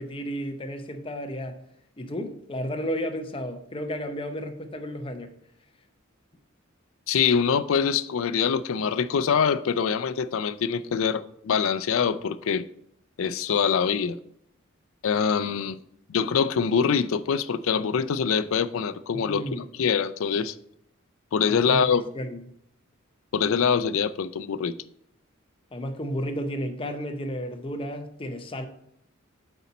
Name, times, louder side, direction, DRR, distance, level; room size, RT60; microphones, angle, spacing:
voice 1, 0.0-1.6 2.0-5.3 19.1-19.7 21.5-21.9 22.1-22.4 25.7-28.7, equal, 25° left, 0.6 m, -32 dB
voice 2, 7.1-12.7 13.2-14.2 15.0-15.8 16.1-20.5 21.3-22.0 23.3-24.8, left 6 dB, 65° left, 0.4 m, -24 dB
8.0 x 4.2 x 4.1 m
head